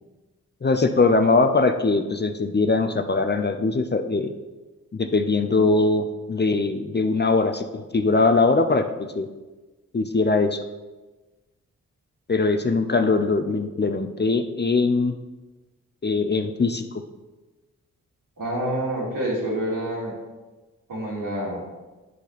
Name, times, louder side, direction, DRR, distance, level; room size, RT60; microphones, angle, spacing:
voice 1, 0.6-4.3 4.9-8.8 9.1-9.3 9.9-10.6 12.3-15.1 16.0-16.8, left 3 dB, 30° left, 6 dB, 0.7 m, -21 dB
voice 2, 18.4-20.1 20.9-21.6, right 1 dB, 65° right, -4 dB, 3.0 m, -27 dB
8.1 x 6.2 x 4.2 m, 1.2 s
supercardioid pair, 40°, 35 cm